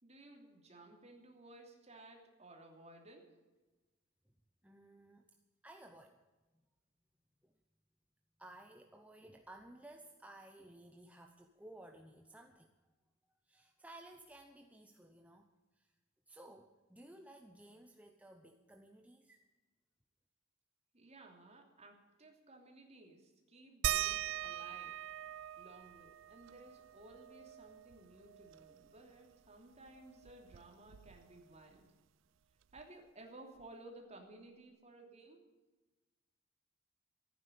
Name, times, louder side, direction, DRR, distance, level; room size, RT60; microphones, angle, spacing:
voice 1, 0.0-3.4 20.9-25.0 25.6-31.9 32.7-35.5, right 2 dB, 35° right, 2 dB, 2.9 m, -57 dB
voice 2, 4.6-5.4 5.6-6.2 7.4-7.5 8.4-12.7 13.3-16.0 16.3-19.5, right 1 dB, 5° right, 4 dB, 0.8 m, -57 dB
sound 1, 23.8-29.0 29.3-29.4 29.7-31.5 32.8-32.9 33.6-33.7, right 12 dB, 70° right, 0.4 m, -42 dB
15.0 x 9.7 x 8.7 m, 1.2 s
head